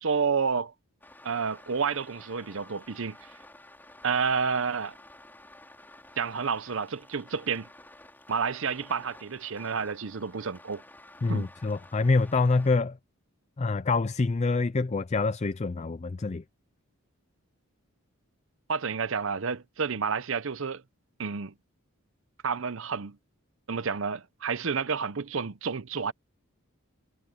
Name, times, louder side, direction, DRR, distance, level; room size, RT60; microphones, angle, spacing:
voice 1, 0.0-0.7 1.2-3.2 4.0-4.9 6.2-7.7 8.3-10.8 11.3-11.5 18.7-20.8 21.2-21.5 22.4-23.2 23.7-26.1, right 5 dB, 60° right, 0.7 m, -30 dB
sound 1, 1.0-12.8, left 1 dB, 10° left, 5.4 m, -52 dB
voice 2, 11.2-13.0 13.6-16.4, left 3 dB, 30° left, 0.4 m, -26 dB
head